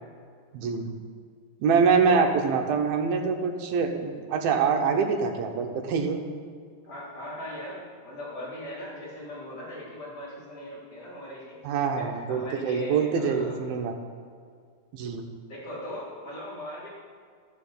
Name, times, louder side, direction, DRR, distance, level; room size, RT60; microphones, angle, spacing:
voice 1, 0.5-0.9 1.6-6.2 11.6-14.0 14.9-15.2, right 5 dB, 80° right, 3 dB, 2.9 m, -25 dB
voice 2, 2.0-2.3 6.8-13.5 15.5-16.9, left 1 dB, 15° left, -9 dB, 3.6 m, -39 dB
12.5 x 7.0 x 7.1 m, 2.1 s
omnidirectional pair, 4.3 m